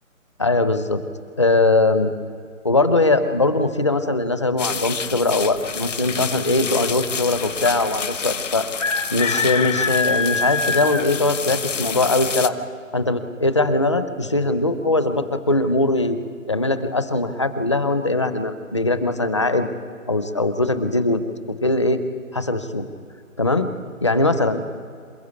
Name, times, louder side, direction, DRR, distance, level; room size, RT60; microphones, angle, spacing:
voice 1, 0.4-1.0 1.4-2.1 2.6-8.7 9.1-12.6 12.9-16.2 16.5-19.7 20.1-21.2 21.6-22.0 22.3-22.8 23.4-23.7 24.0-24.6, left 2 dB, 20° left, 10 dB, 0.7 m, -21 dB
sound 1, 4.6-12.5, left 5 dB, 60° left, 1.4 m, -26 dB
27.5 x 16.0 x 8.3 m, 2.2 s
figure-of-eight pair, 160°, 41 cm